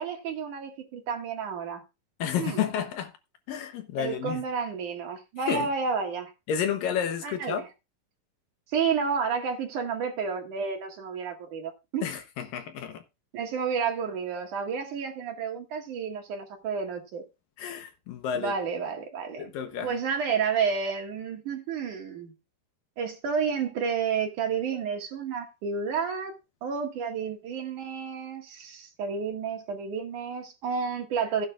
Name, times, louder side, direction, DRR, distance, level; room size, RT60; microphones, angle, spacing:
voice 1, 0.0-1.8 2.4-2.6 4.0-6.3 7.2-7.7 8.7-12.0 13.3-17.2 18.3-19.5 19.8-22.3 23.0-31.5, right 6 dB, 55° right, 3.1 m, -31 dB
voice 2, 2.2-3.1 3.5-4.4 5.5-5.7 6.5-7.6 12.0-13.0 17.6-18.5 19.4-19.9, left 8 dB, 70° left, 2.4 m, -31 dB
16.0 x 9.7 x 2.4 m
omnidirectional pair, 4.5 m